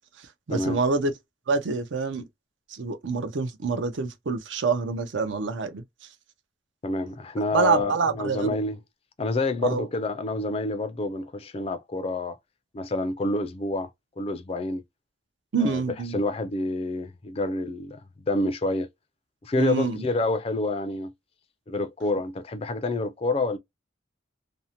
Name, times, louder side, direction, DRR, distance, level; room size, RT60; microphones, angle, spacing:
voice 1, 0.5-1.1 1.5-2.2 2.7-5.8 7.5-8.6 9.6-9.9 15.5-16.2 19.6-20.0, right 4 dB, 75° right, 0.5 m, -26 dB
voice 2, 6.8-8.8 9.2-12.4 12.7-13.9 14.2-14.8 15.6-15.8 16.1-18.0 18.3-18.9 19.4-21.1 21.7-23.6, left 2 dB, 30° left, 0.3 m, -28 dB
2.5 x 2.0 x 2.8 m
head